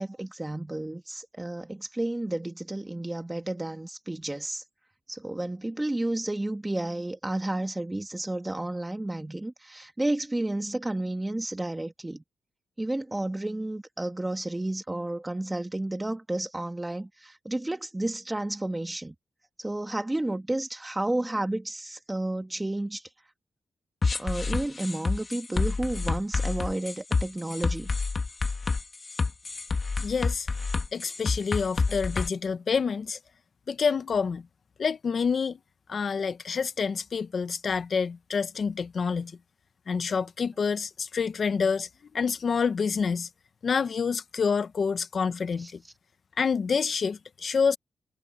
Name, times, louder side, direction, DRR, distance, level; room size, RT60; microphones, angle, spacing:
voice 1, 0.0-4.6 5.1-12.2 12.8-19.1 19.6-23.0 24.2-27.9 31.9-32.0 45.6-45.7, right 1 dB, 15° right, 2.3 m, -31 dB
sound 1, 24.0-32.3, left 4 dB, 35° left, 1.9 m, -28 dB
voice 2, 30.0-30.5 30.9-33.2 33.7-34.4 34.8-35.6 35.9-39.3 39.9-41.9 42.1-43.3 43.6-45.8 46.4-47.8, left 5 dB, 55° left, 0.9 m, -27 dB
cardioid pair, 100°, 0 cm